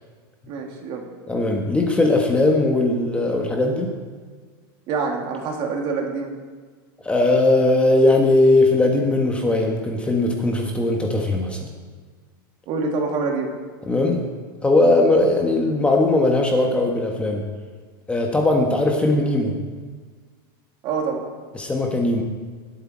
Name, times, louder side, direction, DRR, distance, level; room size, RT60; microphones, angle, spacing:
voice 1, 0.5-1.0 4.9-6.3 12.7-13.5 20.8-21.2, right 4 dB, 40° right, 2 dB, 2.3 m, -26 dB
voice 2, 1.3-3.9 7.0-11.7 13.9-14.2 14.6-17.4 18.1-19.5 21.5-22.2, left 2 dB, 10° left, 1 dB, 1.2 m, -19 dB
20.0 x 8.4 x 4.3 m, 1.5 s
supercardioid pair, 140°, 12 cm